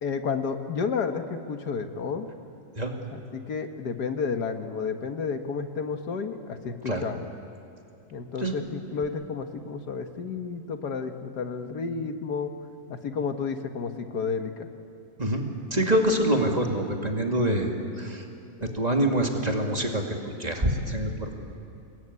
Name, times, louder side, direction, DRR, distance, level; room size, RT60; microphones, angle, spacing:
voice 1, 0.0-2.3 3.1-7.3 8.1-12.5 12.9-14.7 18.6-18.7, left 5 dB, 75° left, 7 dB, 1.9 m, -31 dB
voice 2, 15.7-17.7 18.0-18.2 18.7-20.0 20.4-21.3, right 1 dB, 25° right, 2 dB, 2.4 m, -25 dB
27.5 x 21.0 x 9.7 m, 2.6 s
omnidirectional pair, 1.8 m